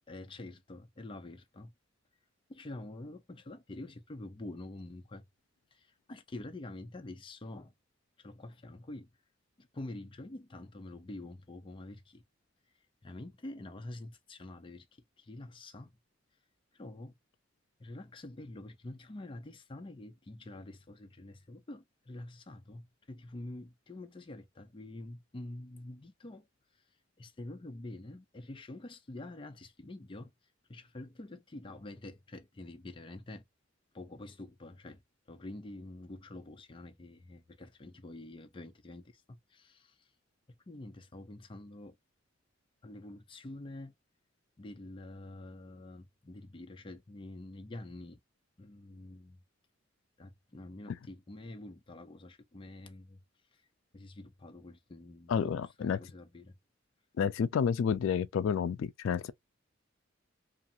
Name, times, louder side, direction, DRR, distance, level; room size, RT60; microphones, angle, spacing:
voice 1, 0.1-1.7 2.5-5.2 5.7-7.7 8.2-9.1 9.6-12.2 13.0-14.9 15.2-15.9 16.7-17.1 17.8-26.5 27.2-30.3 30.7-33.4 33.9-35.0 35.3-40.1 40.5-42.0 42.8-43.9 44.6-48.2 48.6-49.4 50.2-53.2 53.5-53.6 53.9-56.5, left 2 dB, 25° left, 0.5 m, -47 dB
voice 2, 55.3-56.0 57.2-59.3, left 7 dB, 90° left, 0.3 m, -30 dB
2.5 x 2.4 x 2.7 m
head